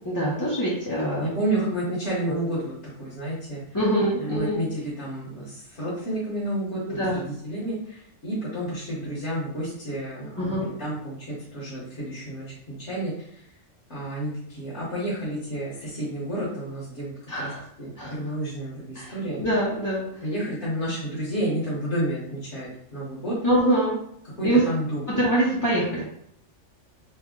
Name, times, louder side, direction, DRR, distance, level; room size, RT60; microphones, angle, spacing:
voice 1, 0.0-1.3 3.7-4.7 6.9-7.2 10.4-10.7 17.3-17.6 18.0-18.1 18.9-20.0 23.4-24.0 24.4-24.6 25.1-26.1, right 1 dB, 20° left, -8 dB, 0.5 m, -24 dB
voice 2, 1.2-2.7 3.0-3.6 4.2-13.1 13.9-17.5 17.8-19.4 20.2-23.3 24.4-25.1, right 1 dB, 60° left, -8 dB, 1.5 m, -30 dB
3.4 x 2.1 x 3.7 m, 0.71 s
omnidirectional pair, 1.3 m